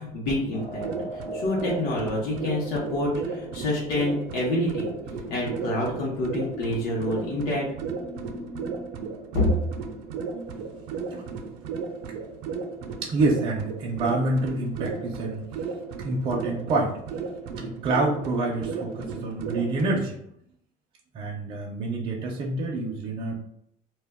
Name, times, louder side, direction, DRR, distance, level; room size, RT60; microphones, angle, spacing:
voice 1, 0.0-4.9 5.3-7.7 9.3-9.5, left 1 dB, 75° left, -5 dB, 0.8 m, -27 dB
sound 1, 0.5-8.9, equal, 40° left, 0.8 m, -42 dB
sound 2, 0.6-20.0, right 5 dB, 90° right, 0.4 m, -35 dB
voice 2, 13.0-15.8 16.0-17.0 17.6-20.2 21.1-23.3, right 2 dB, 30° right, -1 dB, 0.4 m, -27 dB
2.2 x 2.1 x 3.4 m, 0.71 s
cardioid pair, 165°, 17 cm